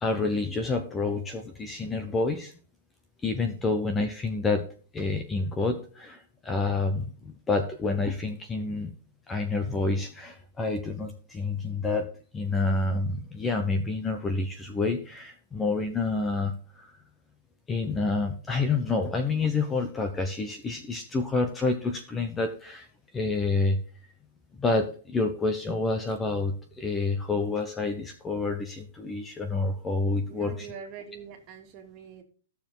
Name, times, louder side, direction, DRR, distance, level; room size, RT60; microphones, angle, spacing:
voice 1, 0.0-2.5 3.2-4.7 4.9-8.9 9.3-12.1 12.3-16.9 17.7-22.9 23.1-23.8 24.6-30.7, left 3 dB, 10° left, 7 dB, 0.9 m, -28 dB
voice 2, 30.3-32.2, right 7 dB, 30° right, 2 dB, 2.5 m, -44 dB
15.0 x 7.0 x 3.8 m, 0.41 s
hypercardioid pair, 160°, 0 cm